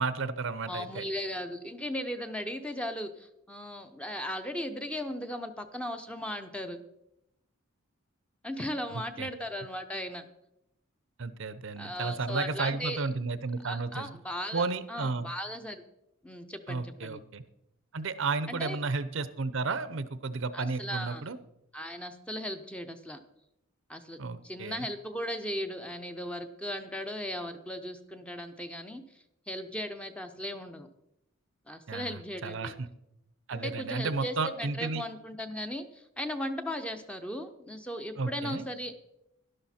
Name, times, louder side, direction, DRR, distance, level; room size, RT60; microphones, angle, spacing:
voice 1, 0.0-1.1 9.2-9.3 11.2-14.1 14.5-15.3 16.7-17.4 17.9-21.4 24.2-24.9 31.9-32.9 33.5-35.0 38.2-38.7, right 4 dB, 60° right, 14 dB, 0.6 m, -33 dB
voice 2, 0.7-6.8 8.4-10.3 11.8-13.1 13.6-15.8 16.2-17.2 18.5-18.8 20.5-21.2 21.7-23.2 23.9-24.2 24.4-29.0 29.5-30.9 31.7-32.7 33.5-39.0, equal, 5° left, 7 dB, 0.7 m, -37 dB
12.0 x 11.5 x 4.3 m, 0.83 s
head